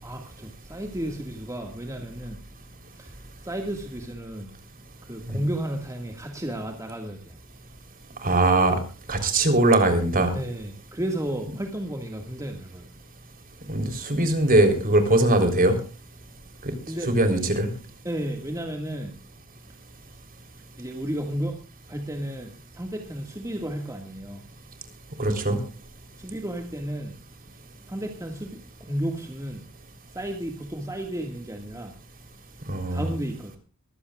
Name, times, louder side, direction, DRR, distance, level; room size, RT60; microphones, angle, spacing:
voice 1, 0.0-2.4 3.0-3.1 3.4-4.5 5.1-7.4 10.3-12.9 16.9-17.1 18.0-19.1 20.8-21.6 21.9-24.4 26.2-27.1 27.9-29.6 30.1-31.9 32.9-33.6, right 1 dB, 15° right, 1.9 m, -33 dB
voice 2, 8.2-8.8 9.1-10.3 13.7-15.8 16.6-16.7 17.1-17.7 25.2-25.6 32.7-33.1, right 2 dB, 40° right, 3.7 m, -21 dB
23.0 x 15.5 x 2.4 m
head